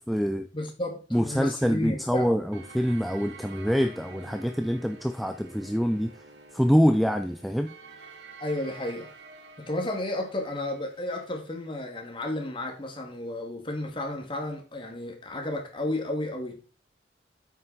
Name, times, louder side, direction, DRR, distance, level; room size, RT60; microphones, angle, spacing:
voice 1, 0.0-0.5 1.1-6.2 6.5-7.8, equal, ahead, 0.5 m, -25 dB
voice 2, 0.5-2.2 8.4-9.1 9.6-16.6, left 1 dB, 30° left, 2.3 m, -32 dB
sound 1, 2.5-11.3, right 4 dB, 70° right, 1.9 m, -49 dB
8.9 x 6.3 x 4.2 m
head